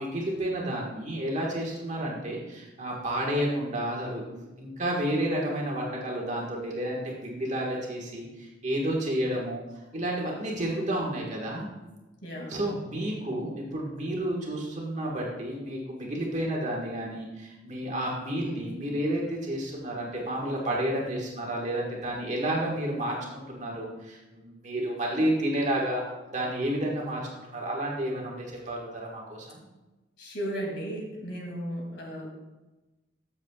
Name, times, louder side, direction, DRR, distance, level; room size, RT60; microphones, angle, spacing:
voice 1, 0.0-9.6 9.9-11.7 12.5-26.0 26.3-27.2 27.5-29.6, right 1 dB, 40° right, -2 dB, 1.6 m, -31 dB
voice 2, 12.2-12.5 30.2-32.3, equal, 65° left, 0 dB, 2.4 m, -35 dB
14.0 x 7.3 x 2.4 m, 1.1 s
head